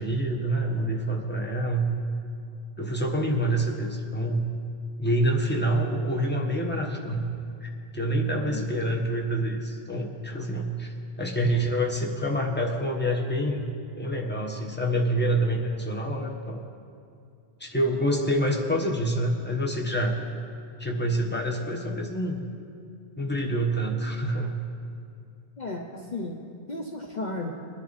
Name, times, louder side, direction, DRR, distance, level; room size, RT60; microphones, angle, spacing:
voice 1, 0.0-1.9 2.8-4.4 5.0-7.3 7.6-10.9 11.2-13.7 14.0-16.6 17.6-20.2 20.8-22.5 23.2-24.6, right 1 dB, 10° left, 0 dB, 1.2 m, -27 dB
voice 2, 25.6-27.5, left 2 dB, 45° left, 1 dB, 0.9 m, -34 dB
22.0 x 10.5 x 4.2 m, 2.4 s
omnidirectional pair, 1.1 m